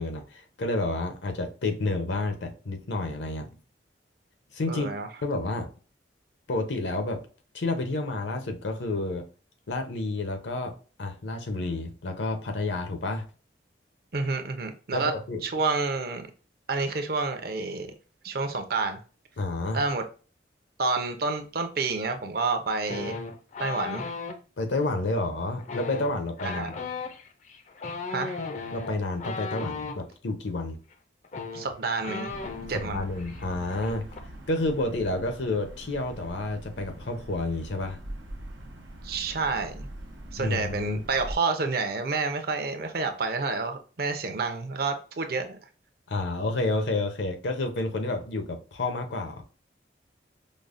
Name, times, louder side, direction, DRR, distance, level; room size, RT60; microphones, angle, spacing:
voice 1, 0.0-3.6 4.5-4.9 5.2-5.7 6.5-7.2 7.5-9.3 9.7-13.3 14.9-15.4 19.4-19.8 24.6-26.8 28.7-30.8 32.7-34.1 34.5-38.0 40.4-41.0 46.1-49.4, left 2 dB, 75° left, 0.7 m, -30 dB
voice 2, 4.7-5.1 14.1-15.1 15.4-16.3 16.7-17.9 18.2-19.0 19.7-20.0 20.8-23.2 23.6-24.0 26.4-26.7 28.1-28.4 31.5-32.4 32.7-33.0 39.0-39.9 40.3-45.6, right 4 dB, 50° right, 0.5 m, -29 dB
sound 1, 22.9-24.4 25.6-30.0 30.9-31.0 31.2-32.9 33.2-33.5 33.7-34.2, left 4 dB, 40° left, 0.4 m, -36 dB
sound 2, 32.3-41.3, right 1 dB, 85° right, 0.8 m, -43 dB
5.2 x 2.1 x 2.4 m
head